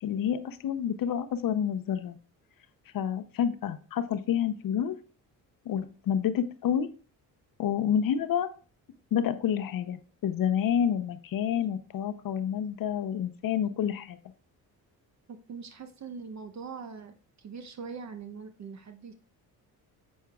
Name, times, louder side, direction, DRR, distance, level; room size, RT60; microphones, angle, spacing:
voice 1, 0.0-2.2 2.9-5.0 5.7-6.9 7.6-8.5 9.1-14.2, left 9 dB, 60° left, 12 dB, 0.7 m, -29 dB
voice 2, 15.3-19.1, right 5 dB, 45° right, 8 dB, 0.7 m, -42 dB
7.2 x 6.5 x 2.3 m, 0.38 s
cardioid pair, 90°, 38 cm